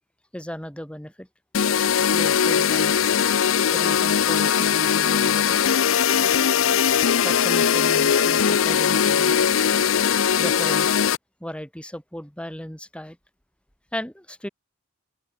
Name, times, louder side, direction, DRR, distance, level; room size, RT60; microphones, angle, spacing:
voice 1, 0.3-1.3 2.1-3.0 3.7-5.7 7.2-9.5 10.4-11.0 11.4-13.2 13.9-14.5, equal, 5° left, 4.9 m, -35 dB
sound 1, 1.5-11.2, left 8 dB, 70° left, 0.6 m, -20 dB
open air
head